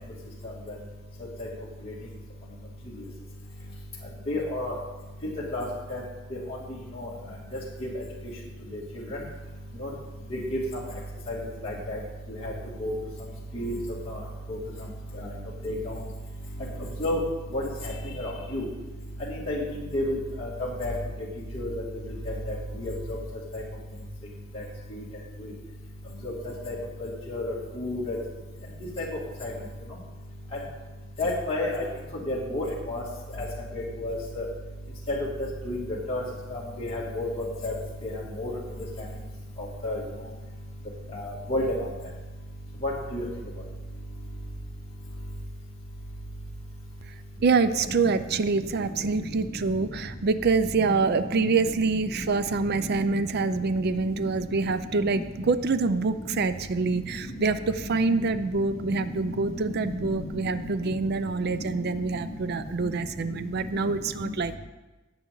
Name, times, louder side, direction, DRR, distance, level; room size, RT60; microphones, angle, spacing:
voice 1, 4.3-4.7 5.5-5.6 5.9-6.0 9.8-9.9 10.5-10.6 11.3-11.4 11.6-12.0 12.8-12.9 13.5-13.7 15.6-15.7 17.0-17.2 17.5-17.6 18.2-18.6 19.5-19.6 19.9-20.2 20.8-20.9 21.5-21.7 22.8-22.9 26.7-26.8 27.3-28.2 29.0-29.1 29.4-29.5 31.2-31.7 32.3-33.0 33.7-34.4 35.6-35.8 36.1-36.2 36.5-37.3 37.6-37.7 38.4-38.5 39.8-40.0 41.5-41.6 42.8-43.2, left 1 dB, 30° left, -6 dB, 2.6 m, -29 dB
voice 2, 47.4-64.6, right 4 dB, 55° right, 12 dB, 0.5 m, -26 dB
18.0 x 6.9 x 3.9 m, 1.1 s
head